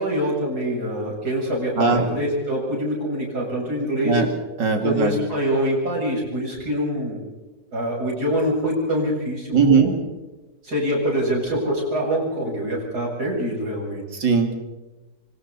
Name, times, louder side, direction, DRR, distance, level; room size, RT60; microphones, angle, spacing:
voice 1, 0.0-4.2 4.8-7.2 7.7-9.9 10.6-14.0, equal, 55° right, -3 dB, 8.5 m, -25 dB
voice 2, 4.6-5.2 9.5-10.0 14.1-14.6, right 5 dB, 70° right, 4 dB, 3.2 m, -19 dB
26.5 x 25.0 x 4.3 m, 1.1 s
omnidirectional pair, 2.0 m